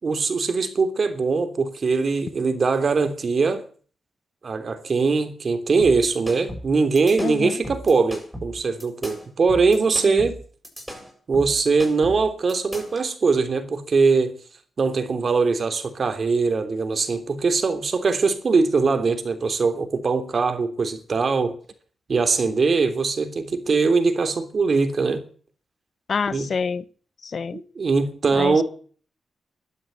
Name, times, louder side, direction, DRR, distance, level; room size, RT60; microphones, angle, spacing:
voice 1, 0.0-3.6 4.4-10.4 11.3-14.4 14.8-21.6 22.1-25.2 26.3-26.5 27.5-28.6, right 4 dB, 55° right, 3.1 m, -21 dB
sound 1, 5.8-13.0, equal, 5° right, 7.6 m, -36 dB
voice 2, 7.2-7.6 10.0-10.3 26.1-26.8 27.2-27.6 28.3-28.6, left 5 dB, 60° left, 1.0 m, -27 dB
12.5 x 12.0 x 8.2 m
cardioid pair, 75°, 0 cm